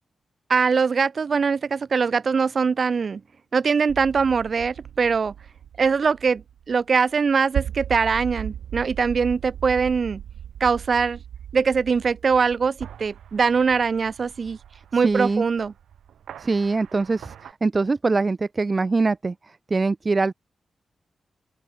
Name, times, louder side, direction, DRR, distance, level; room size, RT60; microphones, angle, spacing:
voice 1, 0.5-3.2 3.5-5.3 5.8-6.4 6.7-10.2 10.6-11.2 11.5-14.6 14.9-15.7, right 5 dB, 60° right, 3.5 m, -22 dB
sound 1, 3.9-17.5, right 9 dB, 90° right, 1.5 m, -38 dB
voice 2, 15.0-15.4 16.4-19.3 19.7-20.3, right 3 dB, 40° right, 0.5 m, -23 dB
open air
cardioid pair, 55°, 0 cm